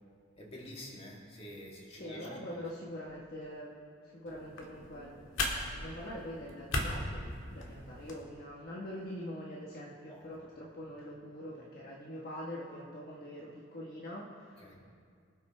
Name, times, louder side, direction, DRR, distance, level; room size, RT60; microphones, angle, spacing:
voice 1, 0.4-2.6 10.1-10.3 14.6-14.8, left 1 dB, 30° left, -3 dB, 2.0 m, -48 dB
voice 2, 1.9-3.8 4.0-14.8, equal, 50° left, -3 dB, 1.2 m, -44 dB
sound 1, 4.3-8.2, left 2 dB, 80° left, 1.7 m, -38 dB
24.0 x 8.2 x 3.2 m, 2.2 s
head